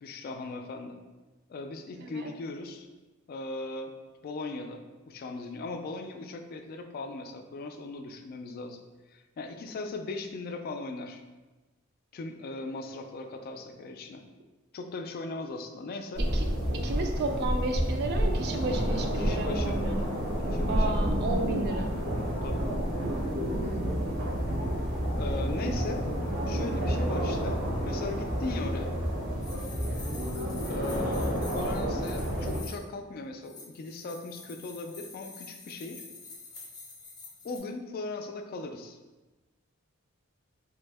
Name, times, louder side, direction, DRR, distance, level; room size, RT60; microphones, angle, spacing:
voice 1, 0.0-1.0 1.5-2.9 3.3-4.0 4.2-8.8 9.1-11.2 12.1-14.2 14.7-16.2 19.2-19.8 20.5-21.0 22.4-22.7 25.2-26.1 26.5-29.0 30.7-36.0 37.4-39.0, left 3 dB, 45° left, 5 dB, 0.3 m, -38 dB
voice 2, 2.0-2.3 16.2-16.5 16.7-20.0 20.7-21.9 23.5-24.0, right 2 dB, 55° right, 4 dB, 0.4 m, -33 dB
sound 1, 16.1-32.6, equal, 75° right, 1.1 m, -29 dB
sound 2, 29.4-32.9 33.4-37.6, left 3 dB, 20° left, 0.7 m, -47 dB
3.5 x 2.1 x 3.3 m, 1.2 s
head